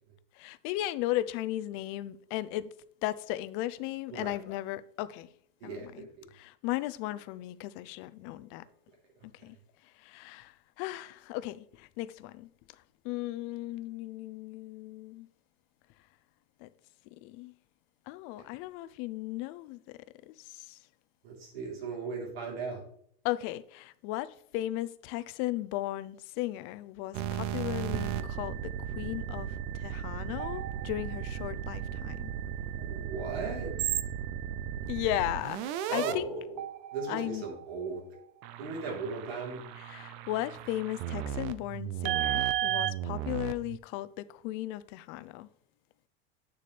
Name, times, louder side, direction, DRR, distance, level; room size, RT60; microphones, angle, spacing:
voice 1, 0.4-2.7 3.0-5.3 5.6-6.1 6.3-8.6 9.2-9.6 10.0-12.5 13.0-15.3 16.6-16.7 17.2-17.5 18.1-19.8 20.3-20.8 23.2-32.3 34.9-36.3 37.1-37.4 39.8-45.5, left 15 dB, 45° left, 0.5 m, -36 dB
voice 2, 5.6-6.3 18.4-18.5 21.2-22.8 32.8-33.7 35.9-36.6 36.9-38.0 38.6-39.6, right 4 dB, 85° right, 3.5 m, -37 dB
sound 1, 27.1-36.1 36.6-38.0 38.4-43.8, right 10 dB, 45° right, 0.6 m, -35 dB
9.2 x 6.8 x 3.3 m
supercardioid pair, 140°, 30 cm